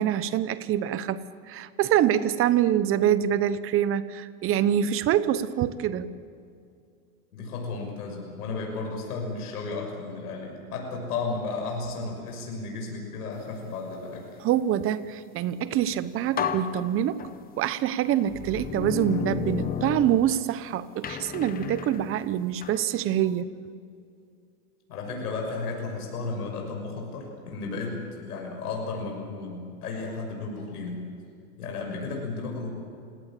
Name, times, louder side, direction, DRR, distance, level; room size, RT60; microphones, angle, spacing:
voice 1, 0.0-6.1 14.4-17.3 17.6-23.5, right 10 dB, 30° right, 15 dB, 1.0 m, -25 dB
voice 2, 7.3-14.3 24.9-31.0 31.6-32.7, left 3 dB, 90° left, 1 dB, 6.3 m, -33 dB
sound 1, 15.8-15.9 16.4-17.7 18.3-20.6 21.0-22.9, left 8 dB, 20° left, 0.9 m, -33 dB
29.0 x 17.5 x 7.5 m, 2.4 s
supercardioid pair, 140°, 45 cm